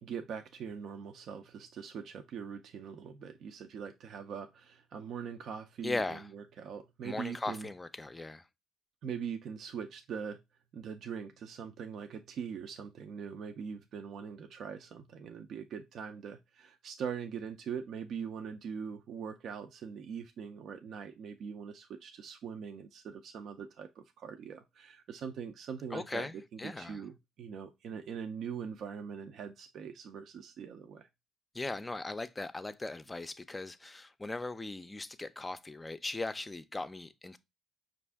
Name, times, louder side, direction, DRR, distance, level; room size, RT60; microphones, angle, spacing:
voice 1, 0.0-7.7 9.0-10.4 10.7-26.3 26.5-31.1, right 7 dB, 65° right, 0.4 m, -42 dB
voice 2, 5.8-6.3 7.0-8.4 25.9-27.0 31.5-37.4, left 2 dB, 15° left, 0.4 m, -38 dB
5.3 x 2.5 x 3.4 m
cardioid pair, 95°, 0 cm